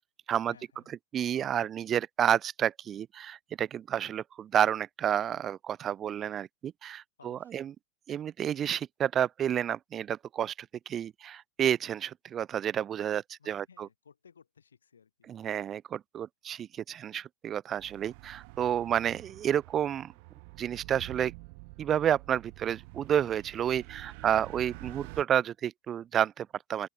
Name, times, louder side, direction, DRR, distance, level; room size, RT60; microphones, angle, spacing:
voice 1, 0.5-0.9 7.2-7.7 13.4-15.3, left 6 dB, 70° left, 7.2 m, -59 dB
voice 2, 1.1-7.7 8.1-10.5 10.9-13.9 15.3-20.1 20.6-21.3 21.8-26.9, right 9 dB, 25° right, 0.3 m, -30 dB
sound 1, 17.8-25.2, right 32 dB, 45° right, 7.8 m, -47 dB
open air
figure-of-eight pair, 90°, 0 cm